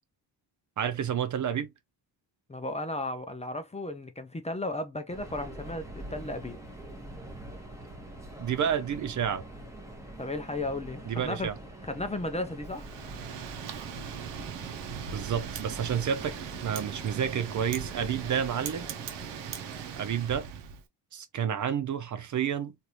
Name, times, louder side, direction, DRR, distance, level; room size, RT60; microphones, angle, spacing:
voice 1, 0.8-1.7 8.4-9.4 11.1-11.5 15.0-18.9 20.0-20.5 21.1-22.7, right 8 dB, 45° right, 0.4 m, -30 dB
voice 2, 2.5-6.6 10.2-11.5 11.8-12.9, left 2 dB, 15° left, 0.5 m, -34 dB
Subway metro underground, 5.1-20.4, right 1 dB, 5° right, 1.0 m, -45 dB
Wind, 12.7-20.8, right 7 dB, 85° right, 0.7 m, -39 dB
3.2 x 2.6 x 2.7 m
wide cardioid pair, 130°, 41 cm